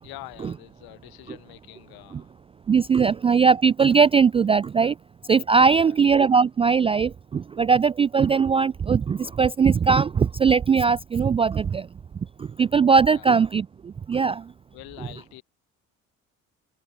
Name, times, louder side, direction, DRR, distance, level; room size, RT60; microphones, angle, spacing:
voice 1, 0.0-2.3 5.6-6.0 13.1-13.3 14.7-15.4, left 19 dB, 60° left, 6.2 m, -45 dB
voice 2, 2.7-4.9 5.3-11.8 12.6-13.7 14.1-14.4, right 5 dB, 15° right, 0.3 m, -19 dB
open air
figure-of-eight pair, 55°, 41 cm